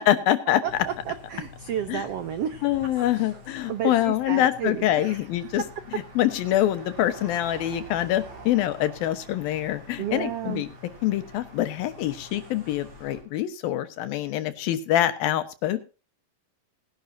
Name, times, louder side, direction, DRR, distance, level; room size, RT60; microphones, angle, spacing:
voice 1, 0.0-0.6 1.9-2.0 2.6-5.6 6.2-10.7 11.0-15.8, left 12 dB, 80° left, 11 dB, 3.0 m, -25 dB
sound 1, 0.6-13.2, equal, 45° right, 5.9 m, -46 dB
voice 2, 0.6-2.6 3.0-3.4 3.7-5.2 10.0-10.6, right 9 dB, 80° right, 10 dB, 1.3 m, -32 dB
20.0 x 11.0 x 2.7 m, 0.32 s
omnidirectional pair, 4.2 m